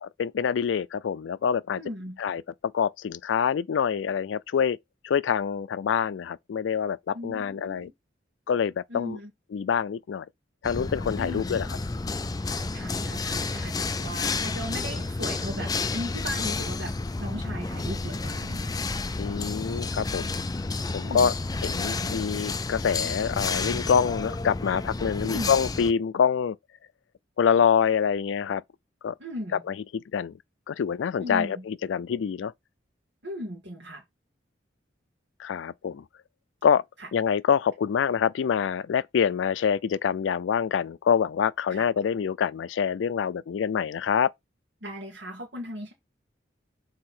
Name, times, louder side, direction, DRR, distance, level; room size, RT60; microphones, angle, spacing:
voice 1, 0.0-1.8 2.2-2.4 2.7-4.8 5.0-7.9 8.5-9.2 9.5-10.3 10.6-11.8 19.2-20.3 20.9-21.3 21.6-26.6 27.4-28.6 29.0-29.1 29.7-30.3 30.7-32.5 35.4-36.0 36.6-36.8 37.1-44.3, left 7 dB, 80° left, 0.4 m, -26 dB
voice 2, 1.7-2.2 7.1-7.9 8.9-9.3 11.2-11.6 12.7-16.9 17.2-18.8 21.0-21.3 25.2-25.5 29.2-29.6 31.2-31.6 33.2-34.0 41.7-41.8 44.8-45.9, equal, 70° right, 2.2 m, -37 dB
sound 1, 10.6-25.9, left 3 dB, 20° left, 0.4 m, -31 dB
6.6 x 4.1 x 4.4 m
head